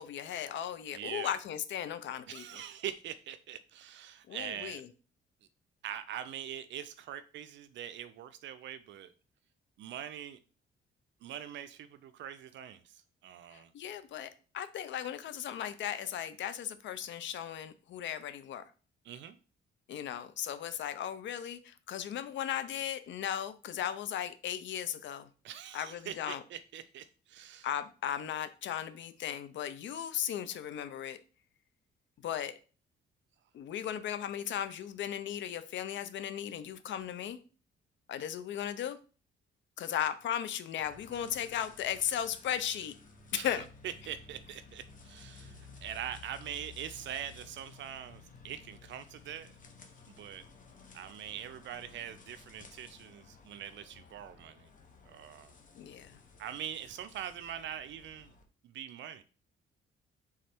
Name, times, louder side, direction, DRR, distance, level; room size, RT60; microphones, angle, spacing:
voice 1, 0.0-2.4 4.3-4.9 13.5-18.6 19.9-25.3 25.7-26.4 27.6-31.2 32.2-32.5 33.5-37.4 38.1-39.0 39.8-42.9 43.3-43.6 55.7-56.2, left 10 dB, 70° left, 0.5 m, -36 dB
voice 2, 0.9-1.3 2.3-4.8 5.8-9.1 9.8-10.4 11.2-13.7 19.0-19.4 25.4-27.7 43.3-49.5 50.1-50.4 50.9-54.7 55.1-55.5 56.4-58.3 58.6-59.2, right 10 dB, 70° right, 0.4 m, -43 dB
sound 1, 40.8-58.4, left 4 dB, 40° left, 1.0 m, -55 dB
3.6 x 3.2 x 4.4 m
cardioid pair, 90°, 20 cm